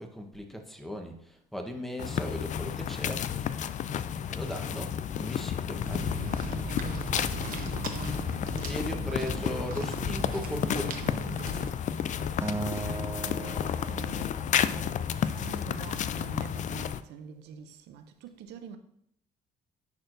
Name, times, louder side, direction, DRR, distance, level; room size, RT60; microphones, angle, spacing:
voice 1, 0.0-3.2 4.3-6.2 8.6-11.0, equal, ahead, 1.1 m, -38 dB
sound 1, 2.0-17.0, left 9 dB, 45° left, 0.4 m, -32 dB
sound 2, 5.8-11.7, right 4 dB, 55° right, 1.0 m, -38 dB
voice 2, 6.7-8.3 11.6-18.8, right 7 dB, 85° right, 0.6 m, -46 dB
Acoustic guitar, 12.4-14.8, right 3 dB, 15° right, 0.5 m, -37 dB
10.5 x 4.5 x 2.6 m
cardioid pair, 90°, 17 cm